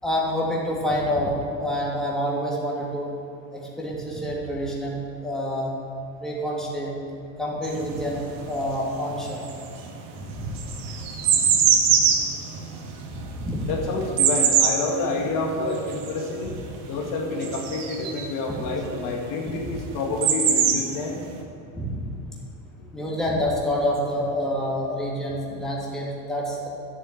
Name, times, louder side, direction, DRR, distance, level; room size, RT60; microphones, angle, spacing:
voice 1, 0.0-3.1 3.5-5.7 6.2-6.9 7.4-9.4 10.2-10.8 11.3-11.4 13.1-13.7 21.7-22.1 22.9-26.7, equal, ahead, -5 dB, 3.0 m, -27 dB
sound 1, 7.6-8.8 9.1-18.4 19.4-19.5 19.7-21.3, right 7 dB, 55° right, 2.0 m, -22 dB
voice 2, 13.7-16.5 16.9-21.2, left 3 dB, 50° left, 0 dB, 2.2 m, -28 dB
11.0 x 7.2 x 9.3 m, 2.7 s
supercardioid pair, 125°, 39 cm